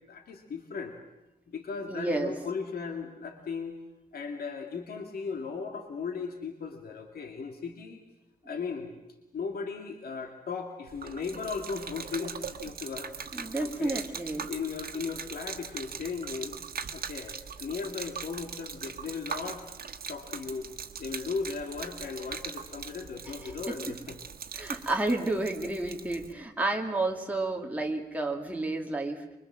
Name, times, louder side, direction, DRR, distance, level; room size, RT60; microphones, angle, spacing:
voice 1, 0.1-0.9 1.5-3.8 4.1-8.0 8.4-9.0 9.3-14.0 14.5-16.6 16.9-19.6 20.1-20.7 21.0-24.2 24.7-24.9, left 5 dB, 90° left, 4 dB, 2.3 m, -37 dB
voice 2, 1.9-2.3 13.3-14.5 23.2-23.8 24.5-29.2, right 2 dB, 10° right, 2 dB, 2.4 m, -31 dB
Gurgling / Liquid, 10.9-26.3, right 6 dB, 90° right, 1.4 m, -41 dB
24.5 x 24.0 x 7.5 m, 0.97 s
wide cardioid pair, 160°, 15 cm